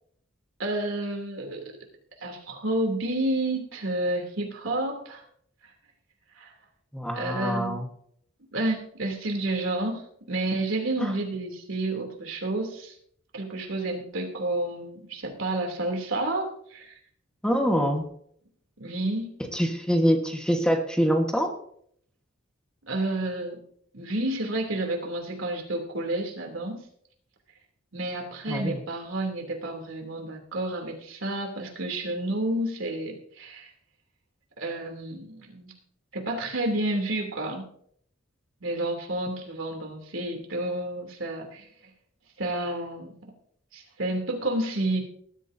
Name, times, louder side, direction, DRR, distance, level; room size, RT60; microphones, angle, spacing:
voice 1, 0.6-1.7 2.2-5.2 6.4-6.5 7.1-7.8 8.5-10.0 10.3-12.9 13.3-17.0 18.8-19.4 22.9-23.6 23.9-26.8 27.9-33.7 34.6-35.7 36.1-37.7 38.6-41.7 42.4-43.3 43.7-45.0, right 1 dB, 80° right, 2 dB, 3.1 m, -30 dB
voice 2, 6.9-7.8 11.0-11.1 17.4-18.0 19.5-21.5 28.5-28.8, equal, 5° left, 3 dB, 1.4 m, -25 dB
19.0 x 13.0 x 2.8 m, 0.64 s
head